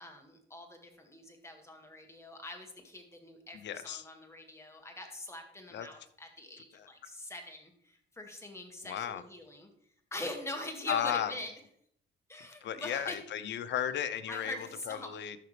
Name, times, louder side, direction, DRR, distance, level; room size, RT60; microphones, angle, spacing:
voice 1, 0.0-9.7 10.1-11.5 12.3-13.2 14.3-15.1, left 1 dB, 15° left, 3 dB, 2.0 m, -43 dB
voice 2, 3.5-4.1 5.7-5.9 6.7-6.9 8.8-9.2 10.9-11.3 12.6-15.4, left 9 dB, 65° left, 11 dB, 0.7 m, -35 dB
13.5 x 5.9 x 3.3 m, 0.68 s
cardioid pair, 90°, 20 cm